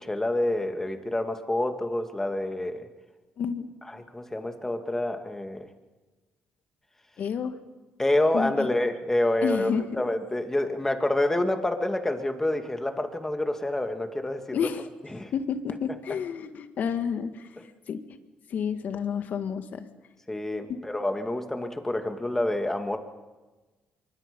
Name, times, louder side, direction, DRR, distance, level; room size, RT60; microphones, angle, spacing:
voice 1, 0.0-2.9 3.9-5.7 8.0-9.7 10.0-14.7 15.1-15.3 20.3-23.0, left 1 dB, 15° left, 6 dB, 2.4 m, -27 dB
voice 2, 3.4-3.7 7.2-7.6 8.3-8.7 9.4-10.0 14.5-14.9 15.3-17.5 17.9-18.0 18.5-19.9, left 7 dB, 65° left, 9 dB, 1.8 m, -30 dB
24.0 x 24.0 x 5.4 m, 1.2 s
cardioid pair, 85°, 3 cm